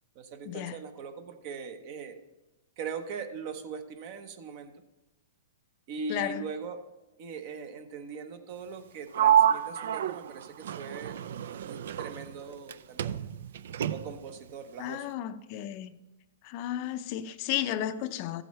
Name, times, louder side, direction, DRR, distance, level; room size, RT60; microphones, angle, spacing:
voice 1, 0.1-2.2 2.8-4.7 5.9-6.8 7.2-11.1 11.6-13.2 13.9-15.1, right 5 dB, 45° right, 1.0 m, -40 dB
voice 2, 6.1-6.4 14.8-16.0 16.4-18.4, left 12 dB, 45° left, 0.5 m, -33 dB
Sliding door, 9.1-12.7 13.0-14.3, right 10 dB, 70° right, 0.4 m, -28 dB
14.0 x 7.7 x 3.2 m
hypercardioid pair, 140°, 0 cm